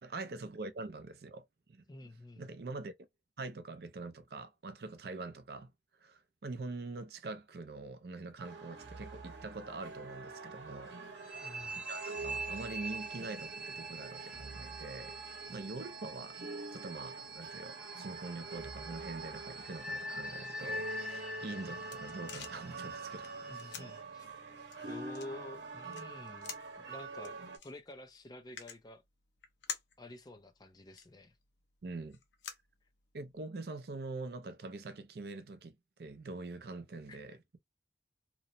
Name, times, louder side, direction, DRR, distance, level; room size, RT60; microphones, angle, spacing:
voice 1, 0.0-1.9 2.4-2.9 3.4-5.7 6.0-11.5 11.9-15.2 15.5-16.4 16.7-23.4 31.8-32.2 33.1-37.6, right 3 dB, 60° right, 0.5 m, -44 dB
voice 2, 1.9-2.5 11.4-11.8 23.5-24.3 24.8-27.4 27.6-29.0 30.0-31.3 37.1-37.3, left 1 dB, 20° left, 0.4 m, -49 dB
sound 1, 8.4-27.6, right 3 dB, 80° right, 0.9 m, -46 dB
sound 2, 11.2-24.0, right 1 dB, 5° right, 0.9 m, -44 dB
sound 3, 21.3-33.4, left 7 dB, 85° left, 0.7 m, -51 dB
2.9 x 2.0 x 2.5 m
head